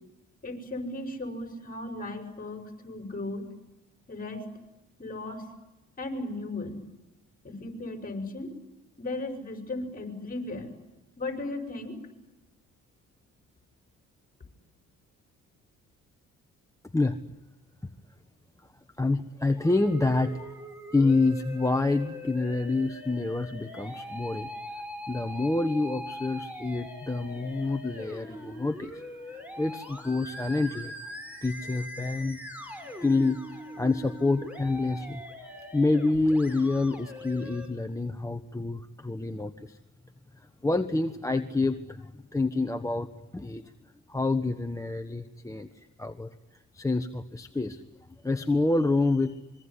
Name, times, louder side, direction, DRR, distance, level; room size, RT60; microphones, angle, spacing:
voice 1, 0.4-3.5 4.1-4.5 5.0-5.5 6.0-6.8 7.4-8.5 9.0-10.7 11.2-12.0, left 2 dB, 30° left, 7 dB, 6.0 m, -36 dB
voice 2, 19.0-20.6 20.9-24.5 25.1-29.0 29.3-30.9 31.4-32.4 33.0-39.8 40.6-43.1 43.3-43.6 44.1-46.3 46.7-47.8 48.2-49.4, left 3 dB, 10° left, 7 dB, 1.3 m, -27 dB
Musical instrument, 19.7-37.7, left 1 dB, 5° right, 6.8 m, -42 dB
25.5 x 23.0 x 9.9 m, 1.0 s
cardioid pair, 90°, 30 cm